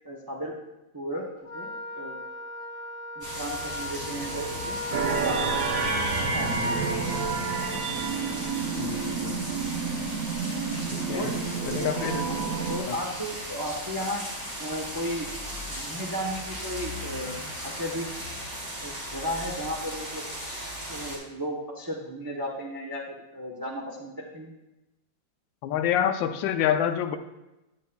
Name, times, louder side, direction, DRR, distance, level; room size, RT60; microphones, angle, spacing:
voice 1, 0.0-0.5 0.9-1.2 1.5-1.7 1.9-2.1 3.2-5.7 6.2-6.8 11.1-11.3 12.7-14.2 14.6-15.3 15.7-17.4 17.6-18.1 18.8-20.2 20.9-24.5, equal, 35° right, -1 dB, 0.3 m, -34 dB
Wind instrument woodwind instrument, 1.4-7.0, left 1 dB, 45° left, 1.6 m, -35 dB
sound 1, 3.2-21.2, equal, 10° right, 2.4 m, -37 dB
sound 2, 4.9-12.8, right 5 dB, 65° right, 0.9 m, -29 dB
voice 2, 8.8-9.5 10.9-11.3 11.7-12.3 12.9-13.0 25.6-27.2, left 9 dB, 85° left, 9 dB, 1.3 m, -27 dB
9.1 x 8.6 x 2.3 m, 0.99 s
omnidirectional pair, 2.0 m